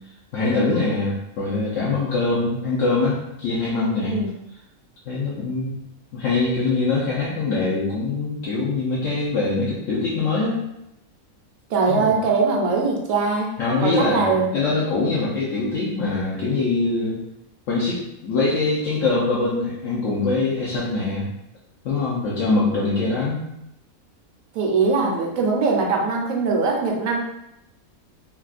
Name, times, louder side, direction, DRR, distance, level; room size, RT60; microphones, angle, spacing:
voice 1, 0.3-4.2 5.1-5.8 6.1-10.6 11.9-12.1 13.6-17.2 17.7-21.3 21.8-23.5, left 3 dB, 65° left, -7 dB, 1.0 m, -23 dB
voice 2, 11.7-13.5 13.8-14.5 24.5-27.2, right 4 dB, 70° right, 0 dB, 1.0 m, -21 dB
3.5 x 2.3 x 2.4 m, 0.83 s
omnidirectional pair, 1.5 m